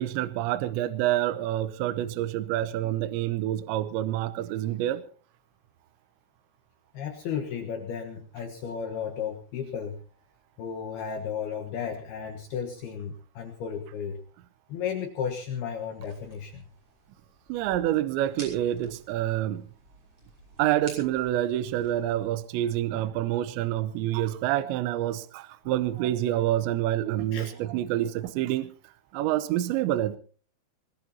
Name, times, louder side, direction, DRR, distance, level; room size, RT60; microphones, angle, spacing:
voice 1, 0.0-5.0 17.5-19.6 20.6-28.7 29.1-30.2, right 13 dB, 75° right, 12 dB, 2.9 m, -27 dB
voice 2, 6.9-10.0 10.6-14.2 14.7-16.7 27.3-27.5, left 7 dB, 65° left, 4 dB, 2.9 m, -34 dB
sound 1, 15.9-22.2, right 1 dB, 30° right, 6.9 m, -50 dB
21.0 x 21.0 x 2.9 m, 0.40 s
omnidirectional pair, 5.6 m